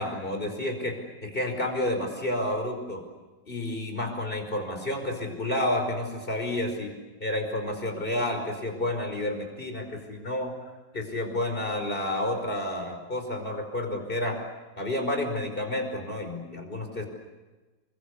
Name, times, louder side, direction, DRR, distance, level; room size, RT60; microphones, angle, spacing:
voice 1, 0.0-3.0 3.5-6.9 7.2-10.5 10.9-14.4 14.8-17.0, left 1 dB, 30° left, 4 dB, 5.4 m, -30 dB
29.0 x 24.0 x 8.4 m, 1.2 s
omnidirectional pair, 1.8 m